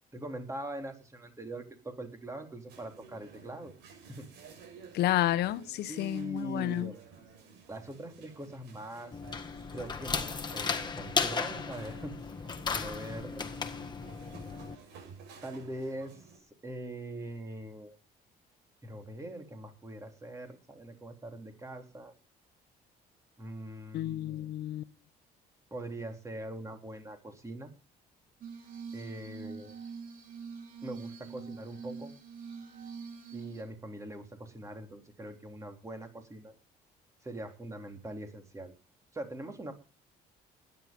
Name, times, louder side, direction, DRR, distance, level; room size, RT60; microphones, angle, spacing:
voice 1, 0.1-3.7 4.1-4.3 5.9-7.0 7.7-9.1 9.7-12.2 12.7-13.5 15.4-16.2 16.6-18.0 18.8-22.1 23.4-24.5 25.7-27.7 28.9-29.7 30.8-32.1 33.3-36.5 37.2-38.7 39.1-39.7, right 1 dB, 20° right, 3.7 m, -42 dB
sound 1, 2.7-16.4, right 6 dB, 85° right, 6.5 m, -54 dB
voice 2, 4.9-6.9 23.9-24.8, left 14 dB, 75° left, 1.1 m, -30 dB
sound 2, 9.1-14.7, left 5 dB, 25° left, 1.7 m, -35 dB
Glass, 28.4-33.6, right 5 dB, 55° right, 4.3 m, -44 dB
20.0 x 10.5 x 5.4 m
cardioid pair, 110°, 17 cm